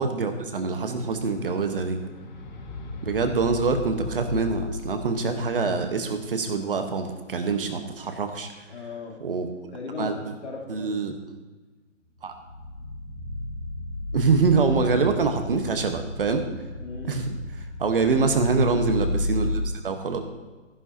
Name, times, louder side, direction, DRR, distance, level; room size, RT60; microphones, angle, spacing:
voice 1, 0.0-2.0 3.0-8.6 9.2-9.5 10.0-10.1 10.7-11.2 12.2-12.4 14.1-16.4 17.0-17.3 17.8-20.2, right 4 dB, 45° right, 6 dB, 1.1 m, -25 dB
sound 1, 0.9-6.9 7.2-7.4 7.7-7.9 12.1-19.7, left 2 dB, 35° left, 1.6 m, -34 dB
voice 2, 8.7-9.2 9.7-11.2 16.8-17.2, left 4 dB, 60° left, -2 dB, 3.2 m, -37 dB
15.0 x 11.0 x 2.8 m, 1.2 s
hypercardioid pair, 155°, 39 cm